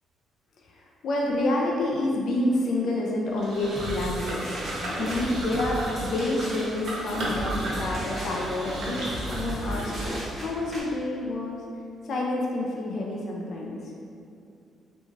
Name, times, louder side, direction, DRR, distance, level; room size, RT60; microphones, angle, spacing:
voice 1, 0.7-11.6 12.1-13.8, left 1 dB, 65° left, -2 dB, 0.4 m, -28 dB
sound 1, 3.4-10.2, right 1 dB, 75° right, 0.7 m, -34 dB
sound 2, 3.8-10.8, right 1 dB, 35° right, 0.8 m, -37 dB
3.1 x 2.2 x 2.5 m, 2.6 s
cardioid pair, 90°, 0 cm